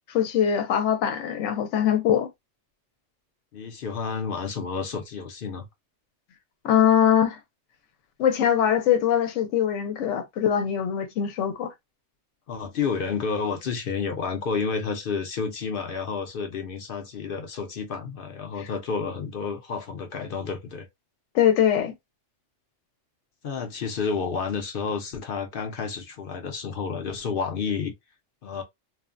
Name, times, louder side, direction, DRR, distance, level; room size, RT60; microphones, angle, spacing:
voice 1, 0.1-2.3 6.6-7.4 8.2-11.7 21.3-21.9, left 9 dB, 85° left, 0.9 m, -22 dB
voice 2, 3.5-5.7 12.5-20.9 23.4-27.9 28.4-28.6, left 5 dB, 60° left, 0.7 m, -30 dB
3.1 x 2.1 x 2.4 m
omnidirectional pair, 1.2 m